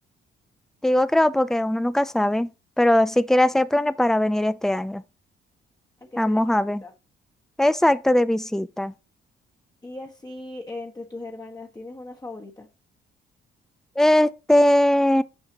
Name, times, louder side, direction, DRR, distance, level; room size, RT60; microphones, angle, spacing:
voice 1, 0.8-2.5 2.8-5.0 6.2-6.8 7.6-8.9 14.0-15.2, left 1 dB, ahead, 0.5 m, -20 dB
voice 2, 6.0-6.4 6.8-6.9 9.8-12.7, left 2 dB, 20° left, 1.4 m, -38 dB
9.0 x 5.5 x 2.9 m
cardioid pair, 90°, 20 cm